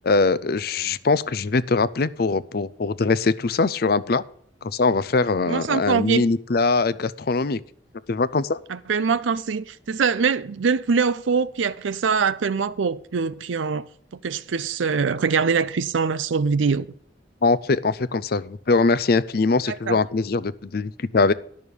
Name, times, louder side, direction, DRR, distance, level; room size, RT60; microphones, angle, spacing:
voice 1, 0.0-4.2 4.6-7.6 8.1-8.6 17.4-21.3, left 3 dB, 55° left, 0.5 m, -22 dB
voice 2, 5.5-6.2 8.7-13.9 14.2-16.9 19.7-20.0, right 5 dB, 85° right, 0.5 m, -23 dB
10.5 x 6.4 x 6.9 m
head